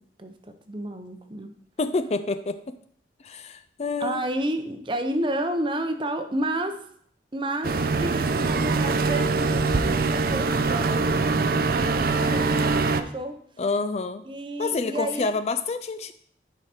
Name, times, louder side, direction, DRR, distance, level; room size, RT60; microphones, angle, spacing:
voice 1, 0.2-1.5 4.0-6.8 7.3-13.4 14.2-15.4, right 1 dB, 25° right, 7 dB, 0.7 m, -31 dB
voice 2, 1.8-2.8 3.2-4.2 13.6-14.2 14.6-16.1, left 3 dB, 35° left, 11 dB, 0.4 m, -28 dB
sound 1, 7.6-13.0, right 3 dB, 55° right, 0.5 m, -23 dB
10.5 x 4.9 x 4.3 m, 0.63 s
head